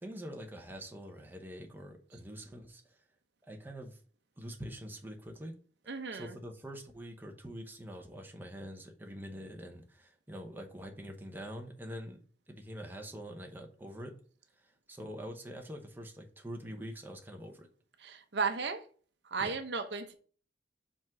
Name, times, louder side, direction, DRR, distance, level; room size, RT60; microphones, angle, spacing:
voice 1, 0.0-3.0 3.5-4.0 4.4-5.5 6.1-12.2 12.5-14.1 14.6-17.7 19.4-19.5, equal, 10° right, 0.8 m, -45 dB
voice 2, 5.9-6.3 18.0-18.8 19.2-20.1, right 4 dB, 70° right, 0.7 m, -35 dB
5.1 x 3.7 x 5.8 m
head